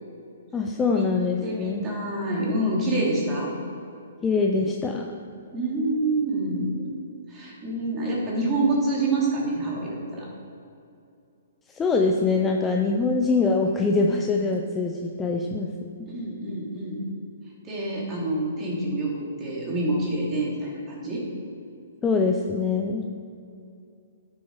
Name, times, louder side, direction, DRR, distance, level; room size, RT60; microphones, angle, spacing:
voice 1, 0.5-1.9 4.2-5.1 11.7-15.7 22.0-23.1, left 4 dB, 10° left, 1 dB, 0.6 m, -23 dB
voice 2, 1.4-3.5 5.5-6.9 7.3-10.3 16.1-17.0 17.6-21.2, right 2 dB, 20° right, -4 dB, 2.8 m, -27 dB
12.0 x 7.2 x 4.9 m, 2.5 s
hypercardioid pair, 155°, 0 cm